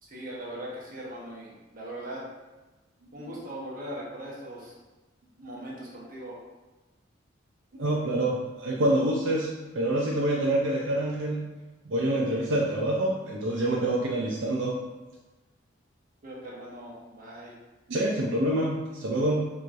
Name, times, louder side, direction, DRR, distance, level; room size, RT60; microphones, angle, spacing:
voice 1, 0.0-2.2 3.1-4.7 5.4-6.4 16.2-17.5, right 1 dB, 50° right, -5 dB, 1.0 m, -40 dB
voice 2, 7.8-11.5 11.8-14.8 17.9-19.5, right 1 dB, 75° right, -3 dB, 0.5 m, -26 dB
4.6 x 3.0 x 2.5 m, 1.2 s
head